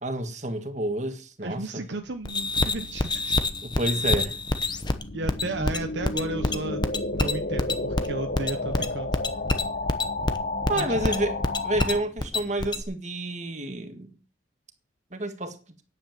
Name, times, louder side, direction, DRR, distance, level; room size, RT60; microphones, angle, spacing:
voice 1, 0.0-1.8 3.6-4.4 10.7-11.4 11.6-14.1 15.1-15.6, right 1 dB, 35° right, 1.8 m, -29 dB
voice 2, 1.4-3.4 5.1-6.8 7.1-9.2 10.7-11.0, right 2 dB, 60° right, 0.9 m, -34 dB
sound 1, 2.3-12.8, left 2 dB, 20° left, 0.9 m, -27 dB
sound 2, 2.9-12.0, left 2 dB, 45° left, 1.0 m, -32 dB
9.8 x 8.8 x 7.5 m
head